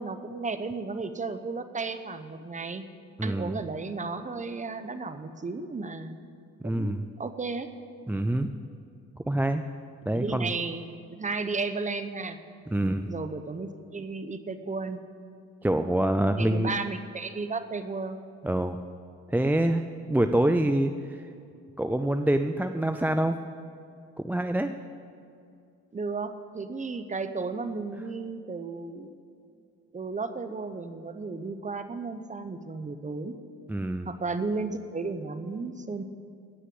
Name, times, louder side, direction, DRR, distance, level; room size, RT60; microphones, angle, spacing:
voice 1, 0.0-2.9 3.2-6.2 6.6-7.7 10.1-10.8 11.1-12.4 13.1-15.0 16.3-18.2 25.9-29.1 29.9-33.3 34.1-36.0, right 4 dB, 25° right, 10 dB, 0.9 m, -34 dB
voice 2, 3.2-3.6 6.6-7.0 8.1-8.5 9.3-9.6 10.1-10.5 12.7-13.1 15.6-16.7 18.4-18.8 19.3-21.3 21.8-23.4 24.2-24.7 33.7-34.1, right 1 dB, 5° right, 7 dB, 0.4 m, -26 dB
17.5 x 6.4 x 7.9 m, 2.4 s
cardioid pair, 90°, 30 cm